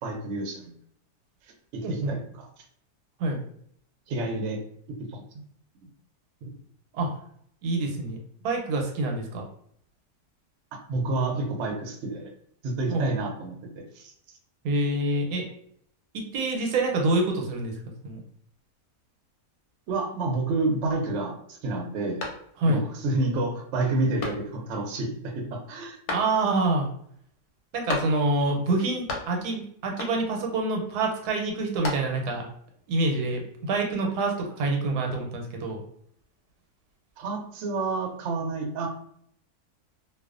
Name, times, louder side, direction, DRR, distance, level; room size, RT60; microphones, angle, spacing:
voice 1, 0.0-0.7 1.7-2.5 4.1-4.6 4.9-5.2 5.8-5.9 10.7-12.3 12.6-14.1 19.9-22.2 22.7-26.0 37.2-38.9, right 2 dB, 65° right, 1 dB, 0.7 m, -29 dB
voice 2, 1.8-2.1 3.2-3.4 6.9-7.1 7.6-8.2 8.4-9.4 12.9-13.1 14.6-15.4 16.1-17.7 18.0-18.2 22.6-22.8 26.1-26.9 27.7-32.4 32.9-35.8, right 2 dB, 85° right, 2 dB, 1.1 m, -26 dB
sound 1, 22.2-22.9 23.3-23.4 24.2-24.8 26.1-26.7 27.9-28.5 28.7-29.6 30.0-30.5 31.5-32.4, left 3 dB, 90° left, 1.1 m, -35 dB
2.4 x 2.3 x 2.4 m, 0.66 s
omnidirectional pair, 1.6 m